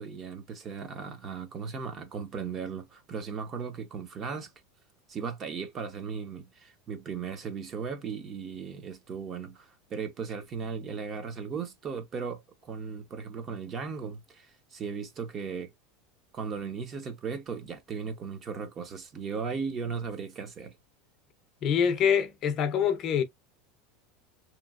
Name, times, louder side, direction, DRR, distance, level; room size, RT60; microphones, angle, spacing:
voice 1, 0.0-4.5 5.1-15.7 16.3-20.8, right 6 dB, 30° right, 0.7 m, -37 dB
voice 2, 21.6-23.2, left 7 dB, 35° left, 0.5 m, -25 dB
2.9 x 2.6 x 2.4 m
supercardioid pair, 145°, 0 cm